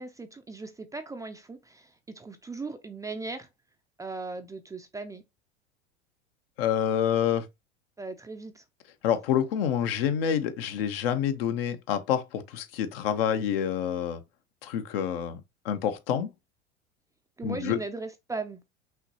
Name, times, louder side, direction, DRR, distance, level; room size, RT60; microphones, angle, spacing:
voice 1, 0.0-3.5 4.0-5.2 8.0-8.6 17.4-18.6, right 3 dB, 10° right, 0.4 m, -38 dB
voice 2, 6.6-7.5 9.0-14.2 14.6-15.4 15.6-16.3 17.4-17.8, left 9 dB, 60° left, 0.8 m, -27 dB
5.7 x 3.0 x 2.8 m
figure-of-eight pair, 85°, 33 cm